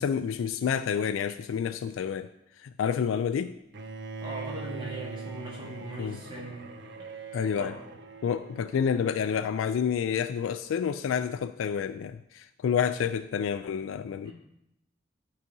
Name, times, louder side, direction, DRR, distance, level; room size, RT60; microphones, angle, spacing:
voice 1, 0.0-2.3 2.6-3.5 6.0-6.2 7.3-7.7 8.2-14.3, left 7 dB, 85° left, 10 dB, 0.3 m, -29 dB
Bowed string instrument, 3.7-9.8, right 4 dB, 60° right, 0.6 m, -42 dB
voice 2, 4.2-6.7 7.6-7.8 14.2-14.3, right 2 dB, 25° right, -4 dB, 1.5 m, -39 dB
12.5 x 4.8 x 2.7 m, 0.83 s
head